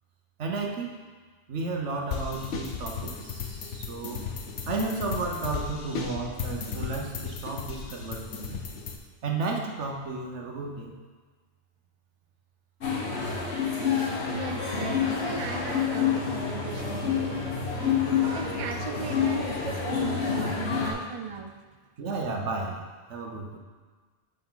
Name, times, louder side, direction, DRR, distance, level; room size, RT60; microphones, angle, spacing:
voice 1, 0.4-0.9 1.5-4.3 4.7-8.6 9.2-11.0 22.0-22.8 23.1-23.6, right 3 dB, 75° right, 1 dB, 1.3 m, -33 dB
sound 1, 2.1-9.0, left 6 dB, 85° left, 1.1 m, -35 dB
sound 2, 12.8-20.9, left 6 dB, 65° left, 1.5 m, -28 dB
voice 2, 14.2-17.7 18.2-21.6, right 5 dB, 45° right, 5 dB, 0.4 m, -37 dB
7.1 x 7.0 x 3.8 m, 1.4 s
omnidirectional pair, 1.2 m